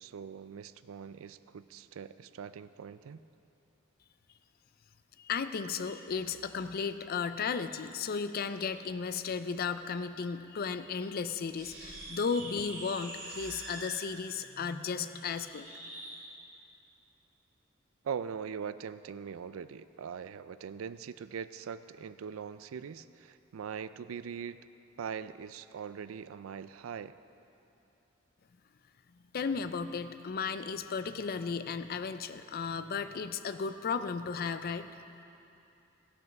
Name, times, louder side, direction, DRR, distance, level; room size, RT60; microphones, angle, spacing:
voice 1, 0.0-3.2 18.0-24.6 25.0-27.1, right 7 dB, 90° right, 14 dB, 0.4 m, -41 dB
voice 2, 5.2-16.0 29.3-34.9, left 5 dB, 45° left, 11 dB, 0.4 m, -35 dB
sound 1, 11.5-16.2, right 2 dB, 60° right, 2.9 m, -45 dB
16.5 x 6.2 x 5.9 m, 2.8 s
head